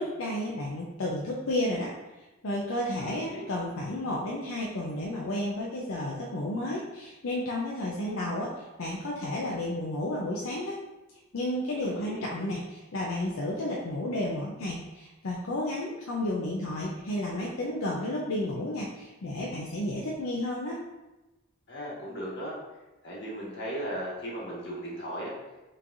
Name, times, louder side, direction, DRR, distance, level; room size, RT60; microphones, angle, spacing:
voice 1, 0.0-10.8 11.3-20.8, left 1 dB, 80° left, -3 dB, 0.6 m, -32 dB
voice 2, 3.0-3.4 11.9-12.2 21.7-22.5 23.0-25.3, equal, 55° left, -5 dB, 1.4 m, -36 dB
5.7 x 3.3 x 2.5 m, 1.0 s
head